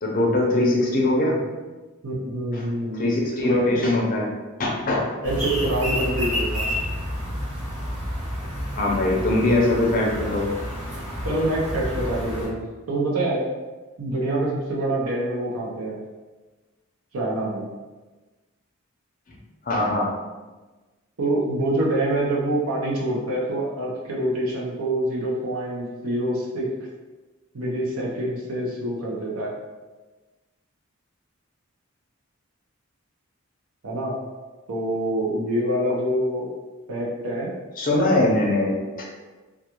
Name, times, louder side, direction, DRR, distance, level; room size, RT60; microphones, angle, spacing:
voice 1, 0.0-1.4 2.5-2.7 2.9-4.3 4.6-5.1 8.8-10.5 19.7-20.1 37.8-39.0, left 2 dB, 40° left, -2 dB, 0.5 m, -22 dB
voice 2, 2.0-3.0 3.4-3.9 5.2-6.7 11.2-13.4 14.0-16.0 17.1-17.7 21.2-26.7 27.5-29.5 33.8-34.1 34.7-36.5 36.9-37.5, right 1 dB, 90° right, -4 dB, 0.6 m, -26 dB
sound 1, 5.2-12.5, equal, 5° right, 1.2 m, -29 dB
2.3 x 2.3 x 2.9 m, 1.2 s
head